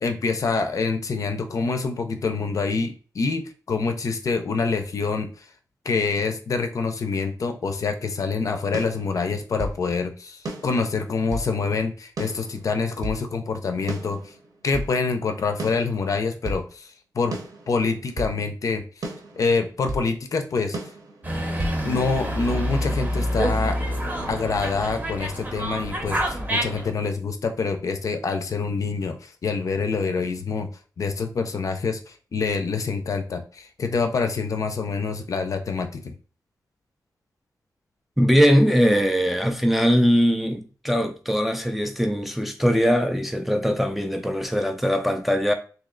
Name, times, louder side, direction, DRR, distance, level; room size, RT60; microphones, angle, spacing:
voice 1, 0.0-5.3 5.9-14.3 14.6-16.9 17.1-17.4 17.7-18.8 19.4-20.8 21.8-23.8 24.3-30.7 31.0-36.1, left 4 dB, 55° left, 0.5 m, -26 dB
sound 1, 8.7-9.8 10.4-11.5 12.2-13.2 13.9-14.9 15.6-16.7 17.3-18.4 19.0-20.1 20.7-21.8, right 1 dB, 65° right, 0.9 m, -34 dB
Dog, 21.2-26.9, equal, 25° right, 0.7 m, -27 dB
voice 2, 38.2-45.5, equal, ahead, 0.4 m, -21 dB
3.1 x 2.7 x 3.7 m
wide cardioid pair, 175°, 7 cm